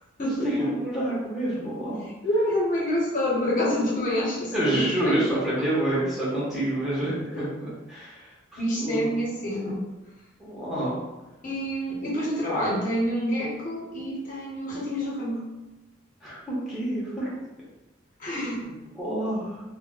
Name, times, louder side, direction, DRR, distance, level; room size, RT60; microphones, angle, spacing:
voice 1, 0.2-2.0 4.5-9.1 10.4-11.0 12.5-12.6 16.2-17.4 18.6-19.6, right 1 dB, ahead, -8 dB, 0.7 m, -28 dB
voice 2, 2.2-5.2 7.3-7.4 8.5-9.8 11.4-15.4 18.2-18.6, equal, 40° left, -5 dB, 0.8 m, -27 dB
2.1 x 2.1 x 3.7 m, 1.1 s
head